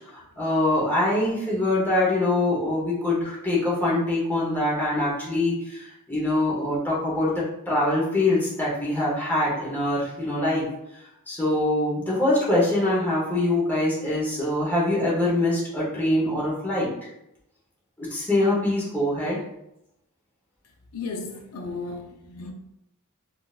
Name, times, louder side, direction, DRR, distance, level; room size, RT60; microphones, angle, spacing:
voice 1, 0.4-10.7 11.3-16.9 18.0-19.4, left 1 dB, 10° left, -7 dB, 1.0 m, -24 dB
voice 2, 20.9-22.5, left 3 dB, 90° left, 2 dB, 0.6 m, -34 dB
3.9 x 2.5 x 2.4 m, 0.84 s
head